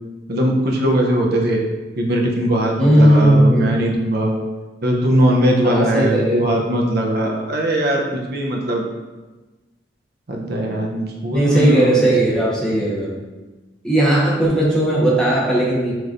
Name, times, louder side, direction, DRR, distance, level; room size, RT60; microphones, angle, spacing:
voice 1, 0.3-1.6 2.0-4.4 4.8-8.8 10.3-12.1 12.6-12.8, right 1 dB, 60° right, 0 dB, 0.7 m, -20 dB
voice 2, 2.8-4.0 5.6-6.5 11.3-13.1 13.8-15.9, right 1 dB, 5° left, -7 dB, 1.1 m, -16 dB
6.2 x 3.1 x 2.6 m, 1.2 s
head